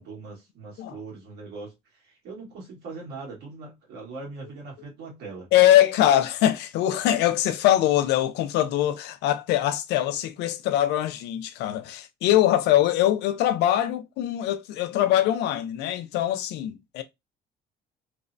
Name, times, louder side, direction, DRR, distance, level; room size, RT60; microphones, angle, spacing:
voice 1, 0.0-5.5, right 3 dB, 75° right, 1.5 m, -41 dB
voice 2, 5.5-17.0, left 12 dB, 80° left, 0.4 m, -22 dB
3.0 x 2.1 x 2.5 m
cardioid pair, 110°, 17 cm